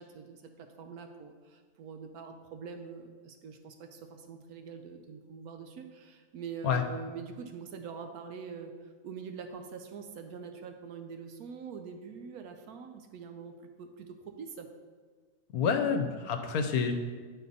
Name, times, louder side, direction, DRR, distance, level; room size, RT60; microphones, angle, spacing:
voice 1, 0.0-14.7, right 5 dB, 75° right, 5 dB, 1.1 m, -44 dB
voice 2, 15.5-16.9, left 6 dB, 75° left, 6 dB, 1.1 m, -28 dB
9.7 x 4.2 x 4.0 m, 1.5 s
omnidirectional pair, 1.6 m